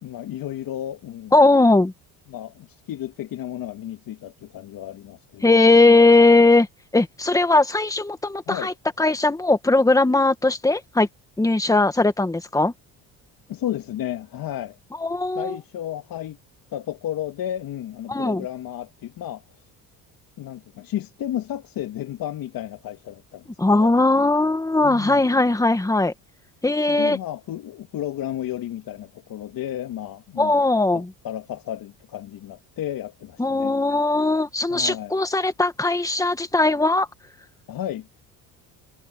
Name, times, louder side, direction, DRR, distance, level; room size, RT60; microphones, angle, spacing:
voice 1, 0.0-1.4 2.3-5.7 8.5-8.7 13.5-14.8 15.3-16.4 16.7-19.4 20.4-23.9 24.8-25.4 26.9-30.6 30.9-33.8 34.7-35.2 37.7-38.1, left 12 dB, 60° left, 2.7 m, -33 dB
voice 2, 1.3-1.9 5.4-6.7 6.9-11.1 11.4-12.7 15.0-15.5 18.1-18.4 23.6-26.1 26.6-27.2 30.4-31.1 33.4-37.1, left 2 dB, 10° left, 1.9 m, -19 dB
cardioid pair, 105°, 39 cm